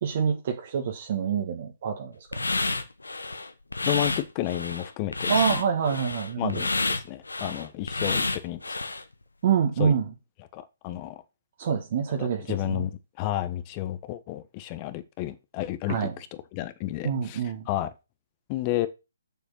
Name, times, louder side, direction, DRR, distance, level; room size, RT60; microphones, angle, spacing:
voice 1, 0.0-2.4 5.3-6.6 9.4-10.1 11.6-12.9 15.9-16.1 17.0-17.6, right 7 dB, 45° right, 1.7 m, -26 dB
sound 1, 2.3-9.0, left 3 dB, 85° left, 1.3 m, -29 dB
voice 2, 3.8-5.3 6.4-8.6 9.8-9.9 10.5-11.2 12.5-12.9 13.2-16.3 16.5-17.4 17.7-17.9 18.5-18.9, left 14 dB, 30° left, 1.3 m, -31 dB
7.4 x 7.0 x 5.8 m
figure-of-eight pair, 140°, 0 cm